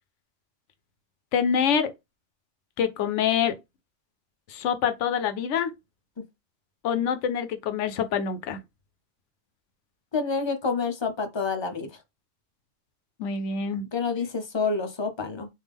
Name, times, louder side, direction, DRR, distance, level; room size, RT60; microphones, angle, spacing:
voice 1, 1.3-1.9 2.8-3.5 4.5-5.7 6.8-8.6 13.2-13.8, left 7 dB, 85° left, 1.0 m, -25 dB
voice 2, 10.1-12.0 13.9-15.5, left 4 dB, 35° left, 0.4 m, -28 dB
3.4 x 2.4 x 3.4 m
omnidirectional pair, 1.2 m